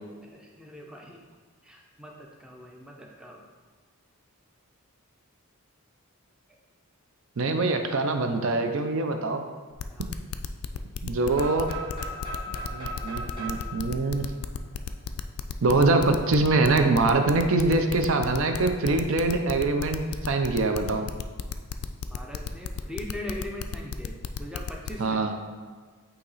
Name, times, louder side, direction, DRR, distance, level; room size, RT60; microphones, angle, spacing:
voice 1, 0.3-1.2 1.6-3.4 9.9-10.1 22.1-25.2, left 1 dB, 5° right, -1 dB, 0.5 m, -40 dB
voice 2, 7.4-9.4 11.0-11.7 12.7-14.3 15.6-21.0 25.0-25.3, right 3 dB, 60° right, 5 dB, 0.5 m, -24 dB
sound 1, 9.8-24.9, left 7 dB, 70° left, 0.3 m, -34 dB
sound 2, 11.3-15.2, right 1 dB, 20° right, 1.5 m, -38 dB
8.4 x 2.9 x 4.0 m, 1.5 s
head